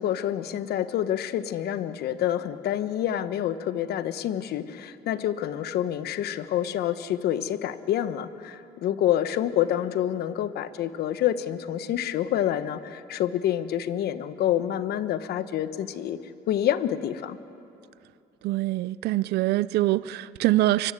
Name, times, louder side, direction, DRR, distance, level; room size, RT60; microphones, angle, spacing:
voice 1, 0.0-16.2 16.5-17.4, left 11 dB, 70° left, 12 dB, 1.1 m, -27 dB
voice 2, 18.4-20.9, right 16 dB, 75° right, 17 dB, 0.5 m, -24 dB
24.5 x 24.0 x 8.2 m, 2.7 s
cardioid pair, 110°, 17 cm